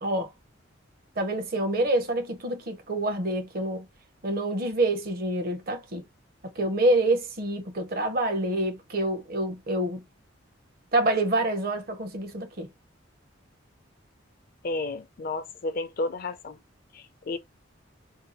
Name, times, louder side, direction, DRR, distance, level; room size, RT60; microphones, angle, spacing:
voice 1, 0.0-0.3 1.2-3.8 4.2-6.0 6.4-10.0 10.9-12.7, right 1 dB, 45° right, 0.7 m, -27 dB
voice 2, 14.6-16.5 17.3-17.4, left 2 dB, 45° left, 0.4 m, -31 dB
2.7 x 2.2 x 3.8 m
head